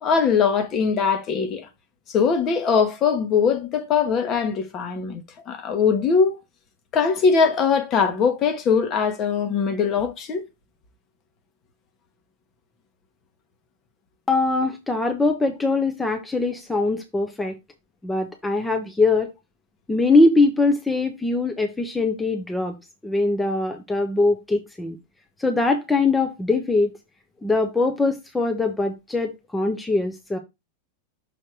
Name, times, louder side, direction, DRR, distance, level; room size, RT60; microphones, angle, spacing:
voice 1, 0.0-1.7 2.1-6.4 6.9-10.4, left 6 dB, 30° left, 1.5 m, -21 dB
voice 2, 14.3-17.6 18.0-19.3 19.9-22.8 23.0-25.0 25.4-26.9 27.4-30.4, left 3 dB, 10° left, 0.9 m, -22 dB
6.4 x 4.4 x 4.6 m
figure-of-eight pair, 90°, 0 cm